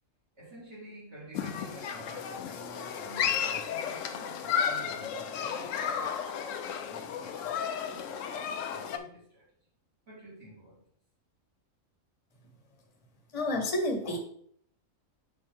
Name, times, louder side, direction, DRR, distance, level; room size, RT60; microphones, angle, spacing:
voice 1, 0.3-6.1 6.9-9.5 10.1-10.8, right 1 dB, 55° right, -5 dB, 2.7 m, -48 dB
Human group actions, 1.3-9.0, left 8 dB, 70° left, 0.9 m, -33 dB
voice 2, 13.3-14.2, left 1 dB, 25° left, 3 dB, 1.1 m, -29 dB
7.7 x 4.1 x 3.6 m, 0.64 s
omnidirectional pair, 1.4 m